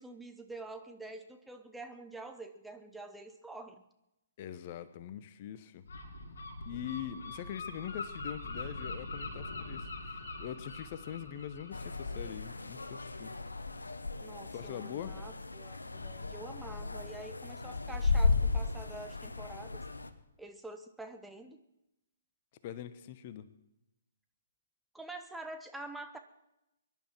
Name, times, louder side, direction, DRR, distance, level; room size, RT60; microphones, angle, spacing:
voice 1, 0.0-3.8 14.2-19.8 20.4-21.6 24.9-26.2, right 2 dB, 5° right, 6 dB, 0.8 m, -47 dB
voice 2, 4.4-5.8 6.6-13.3 14.5-15.2 22.6-23.5, left 10 dB, 35° left, 13 dB, 1.0 m, -43 dB
Gull seagull, 5.8-13.4, left 2 dB, 55° left, 5.6 m, -43 dB
sound 1, 11.7-20.1, left 3 dB, 70° left, 1.1 m, -35 dB
23.0 x 11.5 x 4.6 m, 0.90 s
figure-of-eight pair, 125°, 0 cm